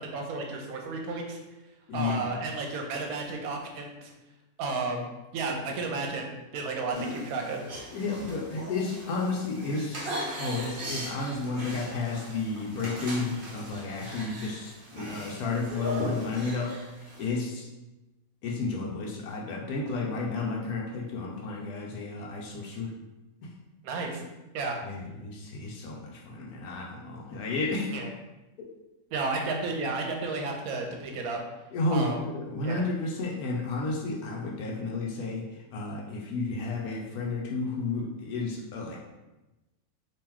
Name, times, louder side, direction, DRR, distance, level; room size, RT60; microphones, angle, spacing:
voice 1, 0.1-1.4 1.9-4.1 4.6-7.6 23.8-24.2 24.5-24.8 27.9-28.1 29.1-31.4 31.9-32.2 32.6-32.8, right 3 dB, 75° right, 2 dB, 1.1 m, -32 dB
voice 2, 1.9-2.3 7.9-16.7 17.2-17.6 18.4-22.9 24.8-27.9 31.7-35.4 35.7-39.0, left 3 dB, 85° left, -1 dB, 1.1 m, -32 dB
sound 1, 6.9-17.3, equal, 45° right, 0.9 m, -39 dB
2.9 x 2.9 x 3.7 m, 1.0 s
omnidirectional pair, 1.5 m